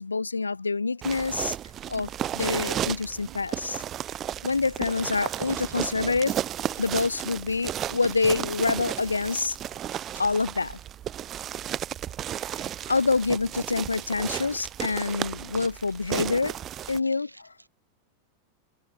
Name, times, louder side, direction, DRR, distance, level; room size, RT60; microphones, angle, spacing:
voice 1, 0.0-1.6 1.9-3.8 4.4-6.4 6.8-9.6 10.2-10.8 12.5-16.6 16.9-17.3, left 4 dB, 80° left, 0.4 m, -27 dB
sound 1, 1.0-17.0, right 11 dB, 30° right, 0.9 m, -34 dB
sound 2, 1.9-2.9 3.2-3.7 4.9-5.7 8.3-9.4 10.8-11.0 11.3-11.4 13.0-14.2, right 26 dB, 50° right, 4.8 m, -55 dB
voice 2, 3.2-3.7 4.8-7.3 8.6-9.4 10.1-10.3 13.6-13.7 13.9-14.3 15.0-15.1 16.4-16.5 17.0-17.7, right 2 dB, 85° right, 1.6 m, -54 dB
figure-of-eight pair, 90°, 0 cm